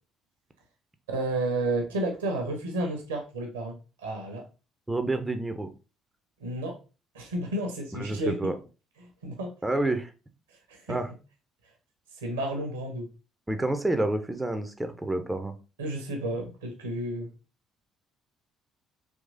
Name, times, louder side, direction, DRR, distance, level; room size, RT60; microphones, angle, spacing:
voice 1, 1.1-3.7 4.0-4.4 6.4-6.8 7.1-8.4 9.2-9.5 10.7-11.0 12.2-13.1 15.8-17.3, right 1 dB, 75° right, 3 dB, 0.8 m, -31 dB
voice 2, 4.9-5.7 7.9-8.6 9.6-10.1 10.9-11.1 13.5-15.5, right 2 dB, 10° right, 8 dB, 0.5 m, -29 dB
3.6 x 2.9 x 2.6 m, 0.32 s
figure-of-eight pair, 50°, 0 cm